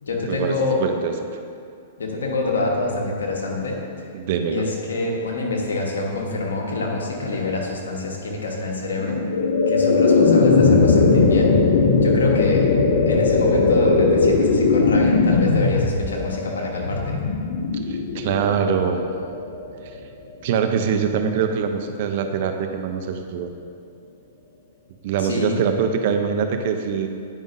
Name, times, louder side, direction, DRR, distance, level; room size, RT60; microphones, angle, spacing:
voice 1, 0.0-0.8 2.0-3.8 4.5-9.2 9.7-11.6 12.0-12.7 13.0-17.2 25.2-25.6, left 3 dB, 85° left, -1 dB, 1.1 m, -26 dB
voice 2, 0.8-1.1 4.1-4.7 17.9-19.1 20.4-23.5 25.0-27.1, right 7 dB, 55° right, 6 dB, 0.6 m, -23 dB
sound 1, 9.0-20.1, left 4 dB, 65° left, 0.8 m, -19 dB
9.2 x 5.2 x 2.6 m, 2.4 s
hypercardioid pair, 125°, 0 cm